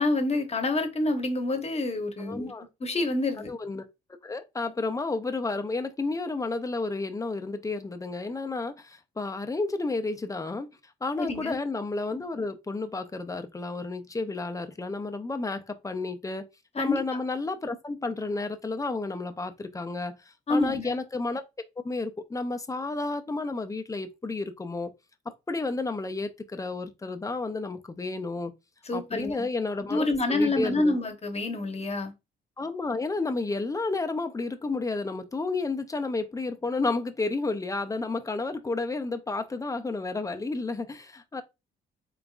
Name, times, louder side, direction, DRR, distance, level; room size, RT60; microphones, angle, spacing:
voice 1, 0.0-3.5 11.2-11.6 16.7-16.9 20.5-21.0 28.9-29.5 29.9-32.1, left 2 dB, 30° left, 1.0 m, -27 dB
voice 2, 2.2-2.7 3.5-3.9 4.2-10.7 11.0-16.5 16.8-20.2 20.5-21.4 21.8-24.9 25.5-28.5 28.9-30.9 32.6-41.4, left 3 dB, 15° left, 0.5 m, -31 dB
3.9 x 3.5 x 2.4 m
cardioid pair, 90°, 20 cm